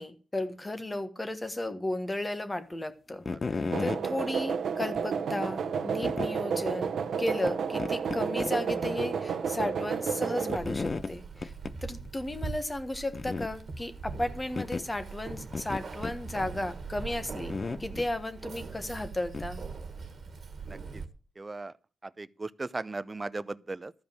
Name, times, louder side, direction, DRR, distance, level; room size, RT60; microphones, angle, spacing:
voice 1, 0.0-3.2 3.5-11.5 11.8-17.5 17.8-19.6, left 1 dB, 20° left, 1.3 m, -34 dB
sound 1, 3.2-4.0 4.9-5.0 6.0-6.3 7.5-7.6 7.8-8.5 8.8-8.9 10.5-11.1 11.4-11.8 12.0-12.1 12.5-12.6 13.1-13.5 14.6-14.9 15.5-16.2 17.5-18.1 19.3-19.5, left 4 dB, 35° left, 0.5 m, -33 dB
sound 2, 3.7-10.6, right 6 dB, 75° right, 1.0 m, -31 dB
Keys jangling, 10.6-21.1, right 4 dB, 55° right, 1.7 m, -41 dB
voice 2, 20.7-21.0 21.4-21.7 22.0-23.9, right 3 dB, 25° right, 0.6 m, -37 dB
13.0 x 5.1 x 8.8 m
cardioid pair, 95°, 0 cm